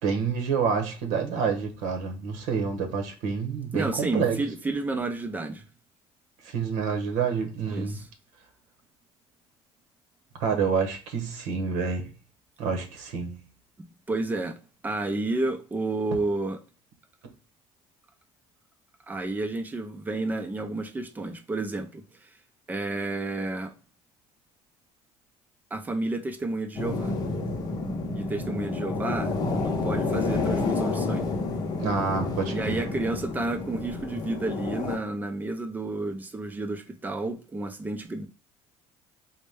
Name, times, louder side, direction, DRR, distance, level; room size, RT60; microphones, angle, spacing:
voice 1, 0.0-4.4 6.4-8.0 10.4-12.1 12.6-13.4 31.8-32.8, right 5 dB, 85° right, 0.9 m, -28 dB
voice 2, 3.7-5.7 7.7-8.1 14.1-14.6 14.8-16.6 19.1-22.3 22.7-23.7 25.7-27.1 28.1-31.4 32.5-38.3, right 2 dB, 15° right, 0.5 m, -31 dB
sound 1, 26.7-35.0, left 3 dB, 35° left, 0.7 m, -29 dB
4.1 x 2.1 x 3.2 m
cardioid pair, 145°, 12 cm